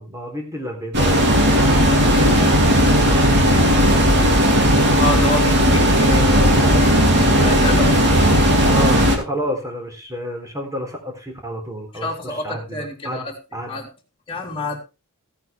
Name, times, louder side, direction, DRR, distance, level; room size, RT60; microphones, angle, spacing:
voice 1, 0.0-4.2 8.6-13.3 13.5-13.8, equal, 15° right, 2 dB, 3.7 m, -31 dB
sound 1, 0.9-9.2, equal, 50° right, 2.8 m, -15 dB
voice 2, 5.0-9.0 11.9-13.3 13.7-13.9 14.3-14.8, left 1 dB, 25° left, -1 dB, 3.5 m, -28 dB
16.0 x 9.1 x 3.5 m, 0.29 s
head